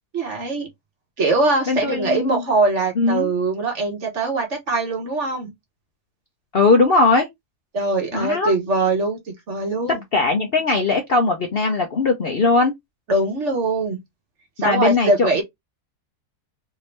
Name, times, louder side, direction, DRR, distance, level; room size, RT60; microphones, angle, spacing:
voice 1, 0.1-0.7 1.2-5.5 7.7-9.2 9.5-10.0 13.1-14.0 14.6-15.4, right 2 dB, 50° right, 1.4 m, -22 dB
voice 2, 1.7-2.4 3.0-3.3 6.5-7.3 8.1-8.5 10.1-12.7 14.6-15.4, left 3 dB, 50° left, 0.7 m, -19 dB
3.5 x 2.7 x 3.2 m
omnidirectional pair, 1.7 m